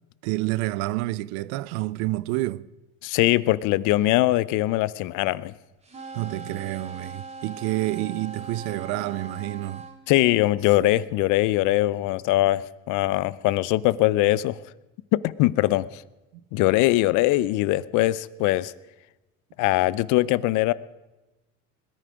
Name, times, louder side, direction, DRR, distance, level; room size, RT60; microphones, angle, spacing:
voice 1, 0.2-2.6 6.1-9.9, right 18 dB, 85° right, 0.5 m, -28 dB
voice 2, 3.0-5.5 10.1-14.6 15.1-16.0 16.5-18.7 19.6-20.7, left 17 dB, 65° left, 0.6 m, -22 dB
sound 1, 5.8-10.0, right 3 dB, 20° right, 2.1 m, -40 dB
21.0 x 10.0 x 5.1 m
supercardioid pair, 100°, 32 cm